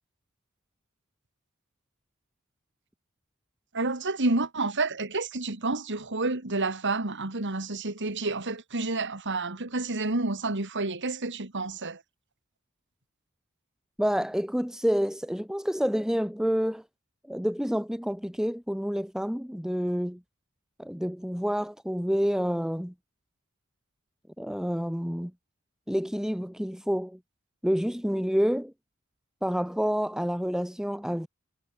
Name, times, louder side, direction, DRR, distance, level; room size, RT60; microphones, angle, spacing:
voice 1, 3.7-12.0, right 3 dB, 55° right, 2.7 m, -29 dB
voice 2, 14.0-16.8 17.3-20.2 20.8-22.9 24.4-25.3 25.9-27.2 27.6-28.7 29.4-31.3, equal, 5° right, 1.7 m, -28 dB
head